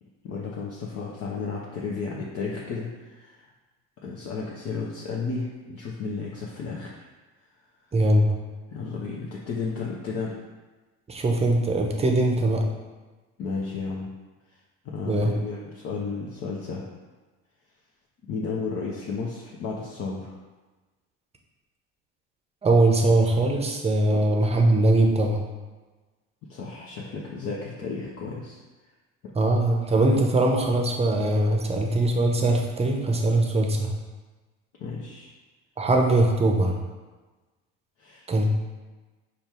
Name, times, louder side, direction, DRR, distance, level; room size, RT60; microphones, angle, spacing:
voice 1, 0.2-3.4 4.0-6.9 8.7-10.3 13.4-14.1 14.5-14.6 14.8-16.9 18.3-20.3 24.1-24.2 26.5-28.6 29.2-29.3 34.8-35.3 38.0-38.3, left 4 dB, 45° left, -4 dB, 0.7 m, -33 dB
voice 2, 7.9-8.3 11.1-12.6 15.0-15.3 22.6-25.4 29.4-33.9 35.8-36.7 38.3-38.5, right 2 dB, 20° right, 2 dB, 0.7 m, -21 dB
5.2 x 2.3 x 4.4 m, 1.2 s
supercardioid pair, 95°, 33 cm